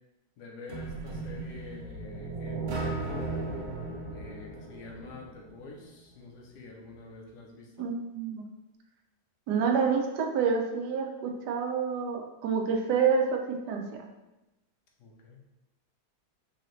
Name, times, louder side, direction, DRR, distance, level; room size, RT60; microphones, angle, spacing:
voice 1, 0.4-3.2 4.1-7.9 15.0-15.4, left 3 dB, 85° left, 0 dB, 1.3 m, -47 dB
sound 1, 0.7-5.6, right 3 dB, 60° right, 1.0 m, -36 dB
voice 2, 7.8-8.5 9.5-13.4 13.7-13.8, right 6 dB, 85° right, 3 dB, 1.2 m, -28 dB
4.7 x 2.8 x 3.1 m, 0.99 s
omnidirectional pair, 1.7 m